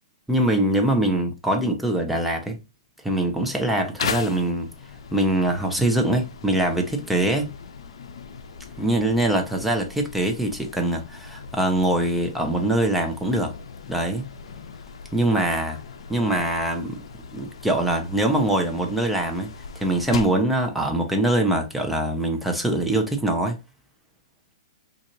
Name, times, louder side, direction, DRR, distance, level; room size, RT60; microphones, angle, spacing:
voice 1, 0.3-2.6 3.0-4.7 5.1-7.4 8.8-13.5 13.9-14.3 15.1-15.8 16.1-17.0 17.3-19.5 19.8-23.6, right 1 dB, ahead, 0.7 m, -23 dB
sound 1, 4.0-20.5, left 6 dB, 70° left, 0.5 m, -38 dB
3.9 x 2.5 x 3.0 m
hypercardioid pair, 140°, 3 cm